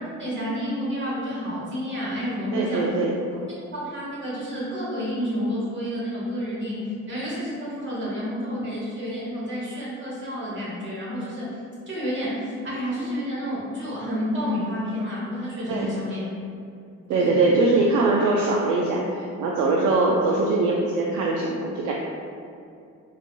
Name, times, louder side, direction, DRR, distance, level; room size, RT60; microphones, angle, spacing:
voice 1, 0.2-3.0 3.7-11.5 11.8-16.3 17.1-17.5, equal, 40° right, -7 dB, 1.5 m, -30 dB
voice 2, 2.5-3.2 15.7-15.9 17.1-21.9, right 3 dB, 80° right, -3 dB, 0.5 m, -22 dB
4.0 x 3.1 x 2.2 m, 2.5 s
cardioid pair, 90°, 30 cm